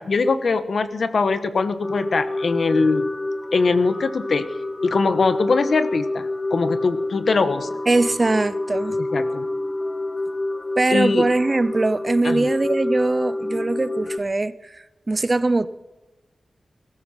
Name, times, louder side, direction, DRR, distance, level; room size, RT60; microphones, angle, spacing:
voice 1, 0.0-3.0 3.5-4.4 4.8-7.7 9.1-9.5 10.9-11.3 12.2-12.5, left 4 dB, 70° left, 11 dB, 1.2 m, -22 dB
sound 1, 1.8-14.2, left 2 dB, 35° left, 1.0 m, -28 dB
voice 2, 7.9-9.0 10.8-14.7 15.1-15.7, right 2 dB, 35° right, 15 dB, 0.7 m, -21 dB
21.5 x 14.0 x 4.4 m, 1.1 s
wide cardioid pair, 90°, 0 cm